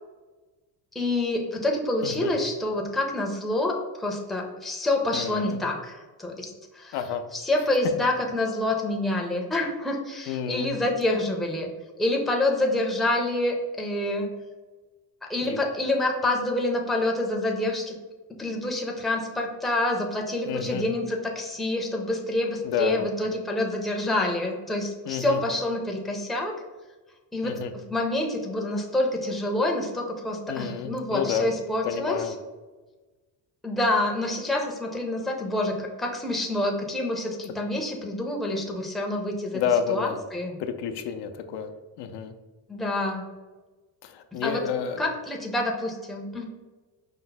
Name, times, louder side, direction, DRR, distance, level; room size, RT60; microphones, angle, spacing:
voice 1, 0.9-7.0 7.3-11.7 12.0-14.3 15.2-17.9 18.4-26.6 27.3-27.6 27.9-32.3 33.6-39.6 39.9-40.6 42.7-43.2 44.3-44.6 45.0-46.5, left 1 dB, ahead, 0 dB, 0.5 m, -27 dB
voice 2, 5.1-5.6 6.9-7.2 10.3-10.7 15.4-15.6 20.5-20.8 22.6-23.1 25.1-25.4 27.4-27.7 30.5-31.5 31.8-32.3 39.5-40.2 40.6-41.7 42.0-42.3 44.0-45.0, left 7 dB, 80° left, 8 dB, 0.5 m, -29 dB
5.3 x 2.0 x 3.9 m, 1.2 s
cardioid pair, 125°, 41 cm